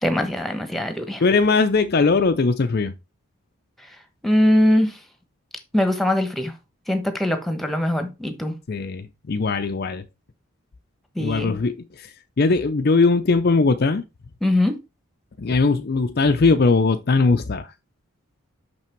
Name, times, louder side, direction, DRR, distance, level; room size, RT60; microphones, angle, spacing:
voice 1, 0.0-1.2 4.2-5.0 5.7-6.5 6.9-8.6 11.2-11.6 14.4-14.8, left 1 dB, ahead, 1.1 m, -21 dB
voice 2, 1.2-2.9 8.7-10.0 11.2-12.1 12.4-14.1 15.4-17.7, left 4 dB, 45° left, 0.5 m, -20 dB
6.1 x 5.8 x 4.5 m
head